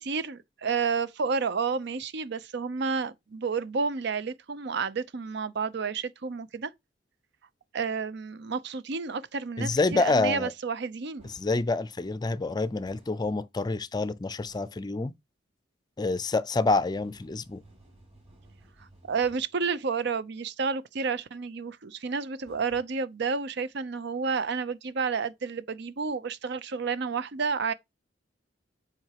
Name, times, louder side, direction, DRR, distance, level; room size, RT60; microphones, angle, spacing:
voice 1, 0.0-6.7 7.7-11.3 19.1-27.7, right 5 dB, 65° right, 0.6 m, -30 dB
voice 2, 9.6-10.5 11.3-15.1 16.0-17.6, left 3 dB, 20° left, 0.4 m, -27 dB
sound 1, 9.7-10.1 11.2-11.6 12.9-13.3 14.5-14.9 16.7-19.6 22.5-22.8, right 1 dB, 35° right, 4.1 m, -56 dB
7.8 x 4.8 x 2.9 m
head